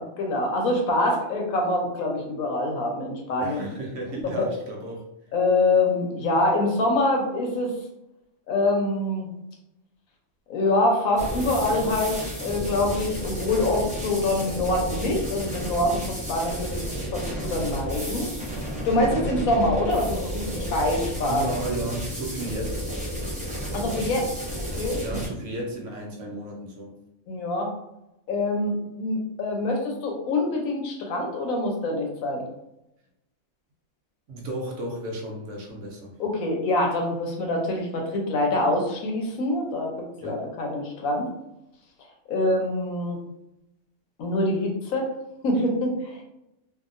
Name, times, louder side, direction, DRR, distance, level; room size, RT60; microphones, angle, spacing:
voice 1, 0.0-3.7 4.4-4.5 5.3-7.7 8.5-9.3 10.5-16.8 17.1-18.3 18.8-21.4 23.7-24.3 24.6-25.2 27.3-27.7 28.3-32.5 36.2-41.3 42.3-43.2 44.2-45.1 45.4-46.2, left 2 dB, 90° left, 1 dB, 1.2 m, -25 dB
voice 2, 3.4-5.1 19.0-19.3 21.3-22.9 23.7-24.1 25.0-27.0 34.3-36.2 40.2-40.4, right 1 dB, 65° right, 0 dB, 1.0 m, -34 dB
sound 1, 11.2-25.3, equal, 10° right, 0.3 m, -32 dB
2.8 x 2.6 x 2.5 m, 0.87 s
omnidirectional pair, 1.4 m